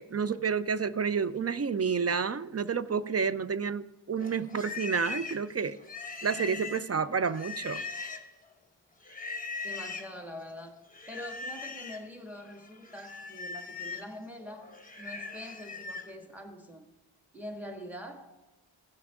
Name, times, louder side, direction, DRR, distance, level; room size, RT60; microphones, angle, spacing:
voice 1, 0.0-5.8 6.2-7.8, right 6 dB, 35° right, 15 dB, 0.4 m, -30 dB
Livestock farm animals working animals, 4.2-8.4 9.0-10.1 10.9-12.1 12.4-16.1, left 4 dB, 15° left, 1.1 m, -40 dB
voice 2, 9.6-14.7 15.0-16.9 17.3-18.4, equal, 5° right, 3 dB, 1.6 m, -44 dB
15.5 x 6.1 x 3.5 m, 1.0 s
wide cardioid pair, 50°, 49 cm